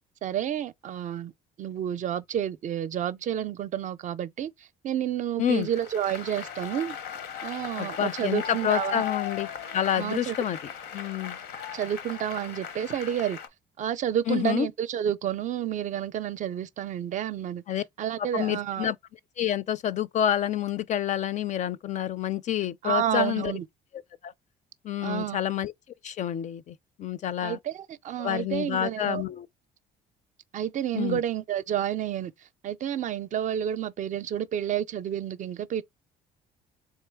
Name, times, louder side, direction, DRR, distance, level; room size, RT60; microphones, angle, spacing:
voice 1, 0.2-1.3 1.6-7.0 7.4-9.0 9.9-10.4 11.7-13.4 13.8-17.6 18.0-18.9 22.8-23.6 25.0-25.4 27.4-29.2 30.5-32.3 32.6-35.8, right 10 dB, 50° right, 0.4 m, -30 dB
Applause, 5.6-13.5, left 8 dB, 85° left, 0.8 m, -38 dB
voice 2, 7.8-9.5 9.7-10.6 10.9-11.4 14.3-14.7 17.7-17.8 18.2-19.0 19.4-23.5 24.2-24.3 24.8-25.7 26.0-27.6 28.2-29.5 30.9-31.2, left 10 dB, 45° left, 0.4 m, -28 dB
3.7 x 3.0 x 3.4 m
cardioid pair, 110°, 17 cm